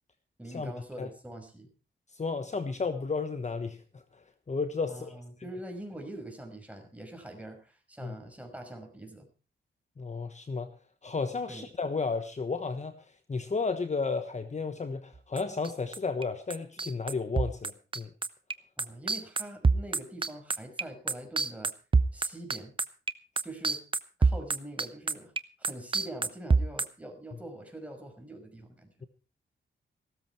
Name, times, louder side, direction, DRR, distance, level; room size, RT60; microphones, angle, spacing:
voice 1, 0.4-1.7 4.9-9.3 11.5-11.7 18.8-21.7 22.1-22.8 23.4-23.8 24.2-25.3 25.6-28.9, right 1 dB, 5° right, 4 dB, 5.6 m, -44 dB
voice 2, 2.1-5.2 8.0-8.1 10.0-10.7 11.0-18.1, left 4 dB, 35° left, 9 dB, 1.2 m, -33 dB
sound 1, 15.2-16.2 16.5-26.9, right 4 dB, 25° right, 0.9 m, -26 dB
16.0 x 13.5 x 4.6 m, 0.35 s
cardioid pair, 90°, 20 cm